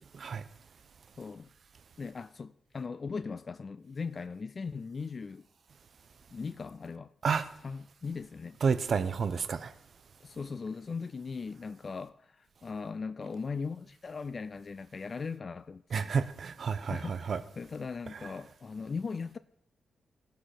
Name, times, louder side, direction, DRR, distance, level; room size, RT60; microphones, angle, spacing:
voice 1, 1.2-1.5 2.0-5.5 6.3-7.1 7.6-8.6 10.2-16.2 16.9-19.4, left 5 dB, 40° left, 0.3 m, -39 dB
voice 2, 8.6-9.7 15.9-17.4 18.1-18.3, right 6 dB, 55° right, 0.6 m, -30 dB
17.0 x 5.7 x 4.9 m
cardioid pair, 90°, 0 cm